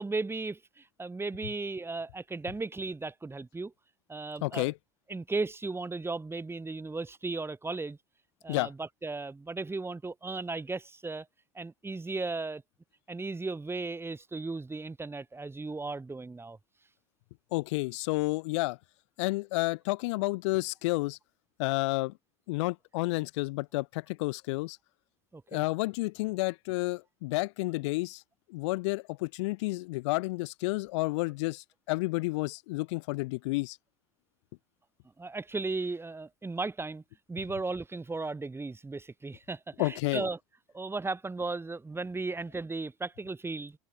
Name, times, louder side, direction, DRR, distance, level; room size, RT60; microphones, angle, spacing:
voice 1, 0.0-3.7 4.1-4.7 5.1-8.0 8.4-11.3 11.5-12.6 13.1-16.6 25.3-25.6 35.2-37.0 37.3-40.4 40.7-43.8, right 3 dB, 15° right, 6.1 m, -36 dB
voice 2, 4.4-4.7 8.5-8.7 17.5-18.8 19.2-21.2 21.6-22.1 22.5-24.8 25.5-28.2 28.5-33.8 39.8-40.3, left 23 dB, 65° left, 3.0 m, -30 dB
open air
hypercardioid pair, 75°, 16 cm